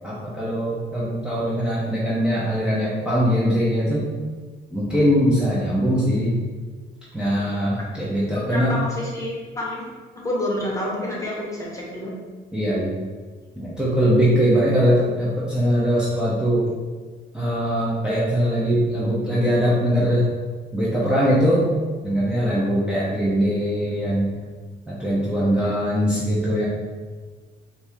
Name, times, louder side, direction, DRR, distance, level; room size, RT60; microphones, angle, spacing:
voice 1, 0.0-4.0 4.7-6.4 7.1-8.7 12.5-13.0 13.6-16.6 17.3-20.2 20.7-21.7 22.0-24.3 24.9-26.7, equal, 5° right, -9 dB, 0.9 m, -21 dB
voice 2, 8.3-9.8 10.1-12.1 25.6-25.8, left 1 dB, 15° left, -4 dB, 1.3 m, -28 dB
4.3 x 2.8 x 3.5 m, 1.4 s
cardioid pair, 90°, 20 cm